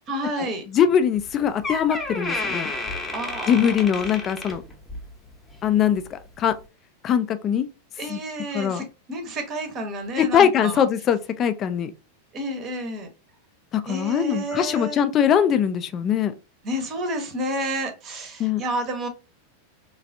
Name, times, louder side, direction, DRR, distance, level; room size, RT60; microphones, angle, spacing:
voice 1, 0.1-0.6 3.1-3.6 8.0-10.8 12.3-13.1 13.9-15.0 16.6-19.1, right 1 dB, 30° right, 0.8 m, -30 dB
voice 2, 0.7-2.7 3.5-4.6 5.6-6.5 7.0-7.7 8.1-8.2 8.5-8.9 10.2-11.9 13.7-16.3 18.4-18.6, left 8 dB, 30° left, 0.3 m, -21 dB
Door, 1.2-1.3 1.6-5.1 5.5-5.8 6.5-6.6, left 2 dB, 10° left, 0.8 m, -31 dB
3.3 x 2.4 x 2.5 m
figure-of-eight pair, 90°, 0 cm